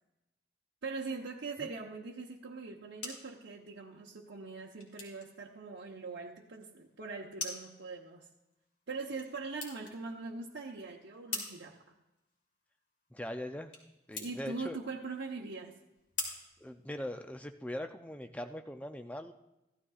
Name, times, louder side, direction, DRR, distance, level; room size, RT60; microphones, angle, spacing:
voice 1, 0.8-8.3 8.9-11.9 14.2-15.8, right 4 dB, 80° right, -3 dB, 0.9 m, -42 dB
sound 1, 2.6-17.5, left 3 dB, 75° left, 2.9 m, -47 dB
voice 2, 13.1-13.7 14.1-14.8 16.6-19.3, left 1 dB, 5° left, 6 dB, 0.4 m, -41 dB
15.5 x 12.5 x 2.4 m, 0.96 s
head